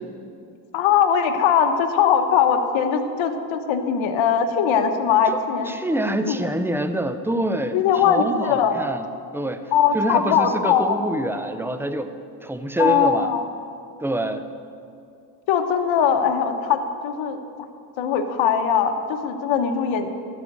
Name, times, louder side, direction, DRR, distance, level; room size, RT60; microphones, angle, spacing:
voice 1, 0.7-5.7 6.3-6.5 7.7-8.8 9.7-11.0 12.8-13.4 15.5-17.4 18.0-20.1, left 7 dB, 65° left, 7 dB, 1.2 m, -20 dB
voice 2, 5.3-9.1 9.3-12.1 12.4-13.3 14.0-14.5, right 1 dB, 5° right, 9 dB, 0.6 m, -26 dB
12.5 x 5.3 x 8.1 m, 2.5 s
supercardioid pair, 70°, 50 cm